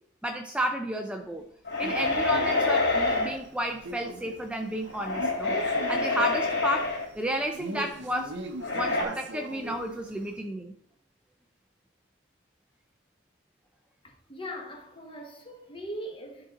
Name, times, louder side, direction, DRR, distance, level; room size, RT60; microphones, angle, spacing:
voice 1, 0.2-1.5 1.8-5.5 5.9-8.4 8.7-10.7, equal, 5° right, 0.4 m, -32 dB
sound 1, 1.7-3.3 4.9-7.1 8.6-9.0, left 3 dB, 65° left, 3.0 m, -27 dB
Male speech man speaking, 1.8-10.3, right 2 dB, 65° right, 0.8 m, -41 dB
voice 2, 14.0-16.5, equal, 25° left, 1.1 m, -40 dB
11.5 x 3.9 x 3.9 m
head